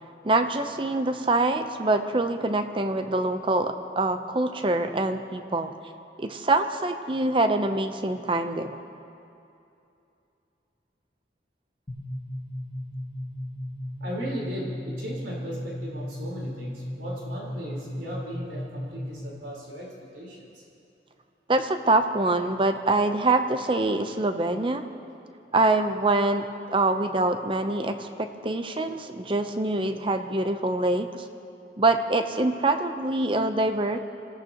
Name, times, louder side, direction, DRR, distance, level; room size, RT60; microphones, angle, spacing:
voice 1, 0.2-5.7 6.2-8.8 21.5-24.8 25.5-31.2 31.8-34.0, right 2 dB, 30° right, 8 dB, 0.7 m, -25 dB
sound 1, 11.9-19.4, left 1 dB, 30° left, 1.7 m, -36 dB
voice 2, 14.0-20.4, equal, 90° right, -5 dB, 4.3 m, -37 dB
26.5 x 16.0 x 3.0 m, 2.7 s
head